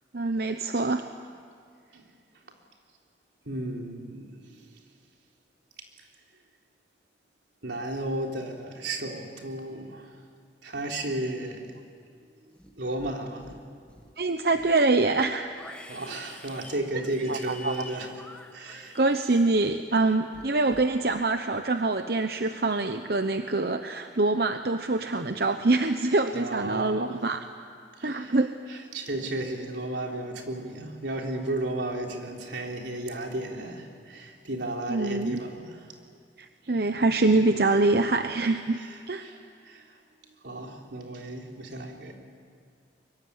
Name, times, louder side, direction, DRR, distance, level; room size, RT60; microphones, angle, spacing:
voice 1, 0.1-1.1 14.2-15.5 17.3-17.7 18.9-27.4 28.0-28.5 34.9-35.4 36.4-38.8 39.1-39.2, right 3 dB, 60° right, 7 dB, 0.9 m, -25 dB
voice 2, 3.5-4.7 7.6-10.2 10.6-11.7 12.8-13.6 15.9-18.2 18.5-19.0 26.3-27.2 28.0-28.4 28.7-36.0 38.7-39.9 40.4-42.1, right 1 dB, 85° right, 1 dB, 3.7 m, -34 dB
Livestock farm animals working animals, 12.5-13.1 13.4-14.1 14.5-20.1 20.3-20.9, left 1 dB, 5° left, 1.7 m, -48 dB
24.0 x 23.5 x 9.7 m, 2.3 s
head